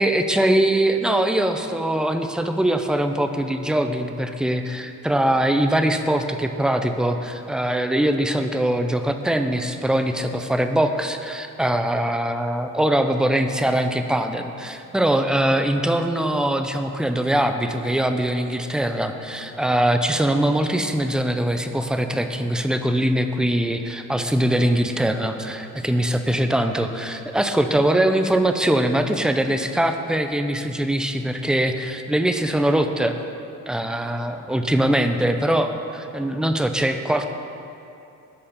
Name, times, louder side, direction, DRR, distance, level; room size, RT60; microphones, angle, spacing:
voice 1, 0.0-33.1 33.7-37.3, right 1 dB, ahead, 7 dB, 0.6 m, -22 dB
11.5 x 4.3 x 6.6 m, 2.8 s
cardioid pair, 90°, 30 cm